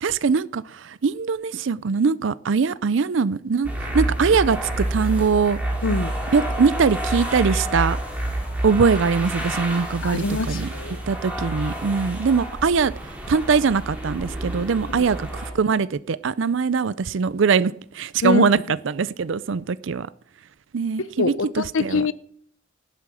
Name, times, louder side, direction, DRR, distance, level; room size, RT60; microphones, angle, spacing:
voice 1, 0.0-5.6 6.3-8.0 8.6-10.7 11.1-12.9 13.3-18.6 18.8-20.1 20.7-22.0, right 5 dB, 65° right, 0.5 m, -22 dB
sound 1, 3.6-15.5, right 1 dB, 5° right, 3.7 m, -28 dB
voice 2, 10.0-11.0 14.9-15.1 18.2-18.5 21.0-22.1, left 3 dB, 75° left, 0.7 m, -24 dB
18.5 x 8.4 x 6.3 m
head